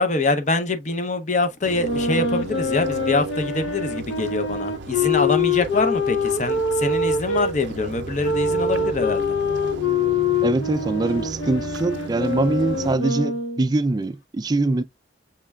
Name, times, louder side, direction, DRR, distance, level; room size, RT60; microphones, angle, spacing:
voice 1, 0.0-9.4, left 3 dB, 40° left, 0.6 m, -24 dB
sound 1, 1.6-13.0, right 2 dB, 75° right, 0.5 m, -35 dB
sound 2, 1.7-7.5 8.2-13.7, left 4 dB, 85° left, 0.6 m, -24 dB
voice 2, 10.4-14.8, right 2 dB, 20° right, 0.3 m, -23 dB
5.8 x 3.1 x 2.3 m
head